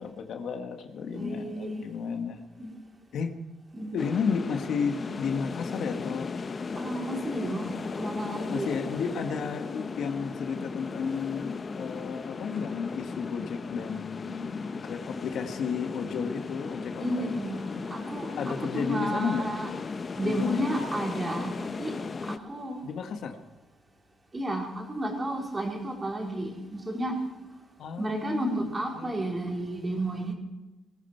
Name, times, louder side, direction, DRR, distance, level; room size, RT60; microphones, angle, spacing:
voice 1, 0.0-2.4 3.1-3.3 3.9-6.3 8.5-17.4 18.4-19.4 20.2-20.6 22.8-23.4 27.8-28.6 28.9-29.1, left 6 dB, 70° left, 5 dB, 1.6 m, -32 dB
voice 2, 1.1-1.8 2.6-2.7 3.7-4.1 6.7-8.8 17.0-19.7 20.2-22.8 24.3-27.3 28.0-30.3, right 1 dB, 25° right, 0 dB, 4.2 m, -32 dB
sound 1, 4.0-22.4, left 4 dB, 40° left, 0.8 m, -36 dB
20.0 x 14.5 x 4.5 m, 1.1 s
cardioid pair, 90°, 0 cm